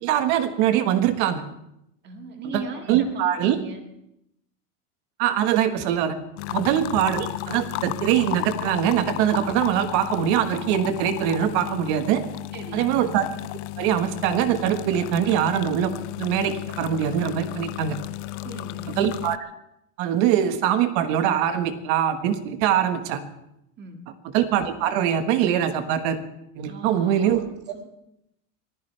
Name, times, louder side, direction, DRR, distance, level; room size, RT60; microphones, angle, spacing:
voice 1, 0.0-1.4 2.5-2.6 2.9-3.6 5.2-6.2 6.5-12.2 12.7-13.2 13.8-18.0 19.0-19.4 20.0-23.2 24.3-26.2 26.5-27.4, right 10 dB, 55° right, 9 dB, 1.6 m, -23 dB
voice 2, 2.0-3.8 6.5-6.7 12.5-13.2 18.4-19.0 23.8-24.0 26.7-27.5 27.7-27.9, right 3 dB, 25° right, 4 dB, 1.9 m, -38 dB
sound 1, 6.4-19.4, left 20 dB, 55° left, 0.5 m, -34 dB
24.0 x 15.5 x 3.4 m, 0.80 s
supercardioid pair, 160°, 42 cm